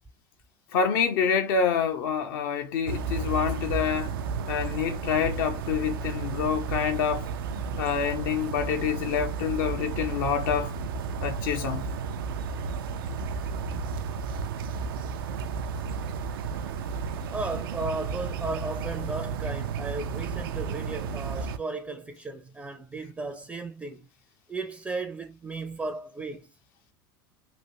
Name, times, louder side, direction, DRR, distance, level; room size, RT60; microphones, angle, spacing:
voice 1, 0.7-4.1 4.5-7.3 7.8-10.7 11.2-11.9, left 7 dB, 70° left, 0.7 m, -27 dB
sound 1, 2.9-21.6, right 5 dB, 80° right, 0.4 m, -33 dB
voice 2, 17.3-24.1 24.5-26.5, right 3 dB, 10° right, 0.5 m, -35 dB
3.1 x 2.5 x 2.8 m
hypercardioid pair, 95°, 12 cm